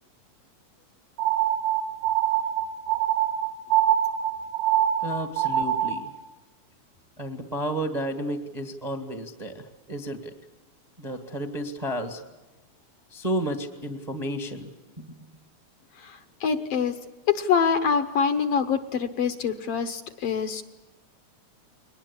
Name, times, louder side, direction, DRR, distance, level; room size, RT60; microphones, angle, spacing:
sound 1, 1.2-6.1, right 11 dB, 55° right, 2.1 m, -24 dB
voice 1, 5.0-6.1 7.2-10.3 11.0-12.2 13.1-14.7 15.0-15.2, right 1 dB, 20° right, 7 dB, 1.1 m, -32 dB
voice 2, 16.0-16.9 17.3-20.6, left 6 dB, 65° left, 9 dB, 1.8 m, -25 dB
22.5 x 19.5 x 8.5 m, 1.1 s
omnidirectional pair, 3.4 m